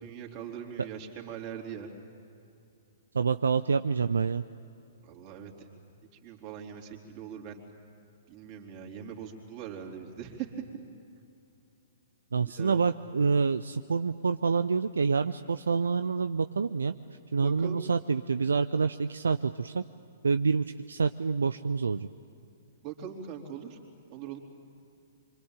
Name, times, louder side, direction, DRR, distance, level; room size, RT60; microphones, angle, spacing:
voice 1, 0.0-1.9 5.0-5.7 6.1-7.6 8.3-10.7 12.4-12.8 17.4-17.8 22.8-23.8 24.1-24.4, right 8 dB, 35° right, 2 dB, 3.7 m, -41 dB
voice 2, 3.1-4.4 12.3-16.9 17.3-19.8 20.2-22.1, right 5 dB, 70° right, 11 dB, 0.6 m, -27 dB
25.5 x 25.0 x 9.0 m, 2.6 s
figure-of-eight pair, 110°, 0 cm